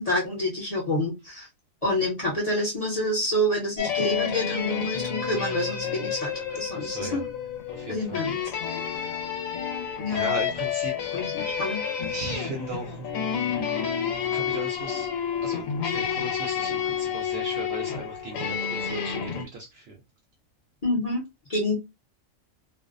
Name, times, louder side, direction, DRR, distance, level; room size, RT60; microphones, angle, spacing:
voice 1, 0.0-1.5 1.8-7.2 7.9-8.6 10.0-10.3 11.1-11.8 20.8-21.2 21.5-21.7, left 1 dB, 35° left, 0.7 m, -28 dB
sound 1, 3.8-19.5, left 7 dB, 80° left, 1.0 m, -30 dB
voice 2, 6.7-7.2 7.7-8.2 8.7-9.5 10.1-11.1 11.4-11.7 12.1-13.1 14.3-15.1 15.4-20.0, right 2 dB, 65° right, 0.7 m, -37 dB
2.5 x 2.0 x 2.4 m
omnidirectional pair, 1.4 m